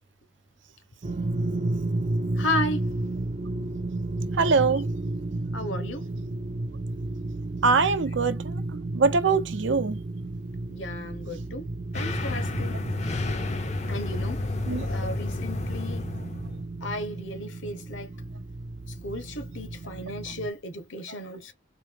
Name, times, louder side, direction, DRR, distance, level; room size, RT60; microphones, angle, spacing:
sound 1, 1.0-20.5, right 2 dB, 35° right, 0.4 m, -33 dB
voice 1, 2.4-2.9 5.5-6.1 10.7-12.8 13.9-14.4 14.8-16.1 16.8-18.1 19.0-21.5, left 1 dB, 75° left, 1.3 m, -34 dB
voice 2, 4.4-4.9 7.6-8.6 8.9-10.0 14.7-14.9, right 4 dB, 70° right, 0.7 m, -23 dB
sound 2, 11.9-16.6, left 2 dB, 35° left, 0.6 m, -31 dB
4.4 x 2.8 x 3.5 m
head